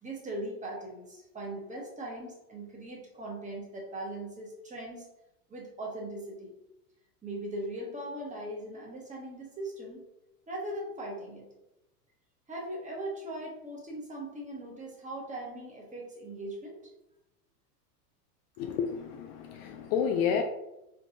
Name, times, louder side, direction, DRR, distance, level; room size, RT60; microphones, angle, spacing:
voice 1, 0.0-5.1 5.5-6.5 7.2-10.0 10.5-11.5 12.5-16.8, right 1 dB, 15° right, -1 dB, 1.2 m, -39 dB
voice 2, 18.6-20.4, left 7 dB, 45° left, 5 dB, 0.5 m, -30 dB
3.7 x 3.4 x 2.8 m, 0.90 s
hypercardioid pair, 95°, 46 cm